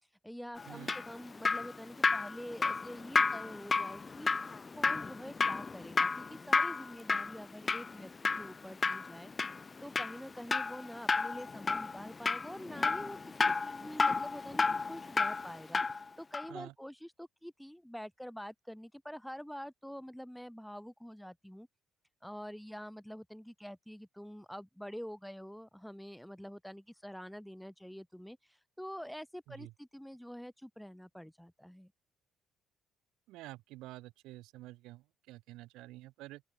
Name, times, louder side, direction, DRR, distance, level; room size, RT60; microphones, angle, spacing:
voice 1, 0.2-8.1 8.4-9.3 9.8-21.7 22.2-31.9, equal, ahead, 1.0 m, -46 dB
Drip, 0.6-16.0 16.3-16.5, left 4 dB, 30° left, 0.9 m, -32 dB
voice 2, 33.3-36.4, right 18 dB, 80° right, 1.1 m, -49 dB
open air
supercardioid pair, 65°, 0 cm